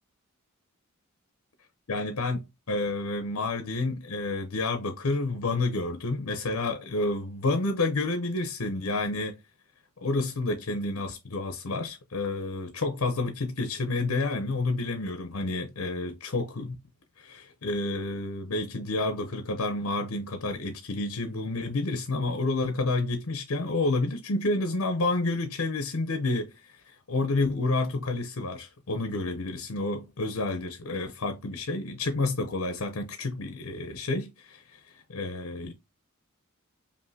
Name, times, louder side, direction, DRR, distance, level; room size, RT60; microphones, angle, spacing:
voice 1, 1.9-9.4 10.0-16.8 17.2-26.5 27.1-34.8 35.1-35.7, left 2 dB, 80° left, 0.7 m, -29 dB
5.2 x 2.6 x 2.7 m
head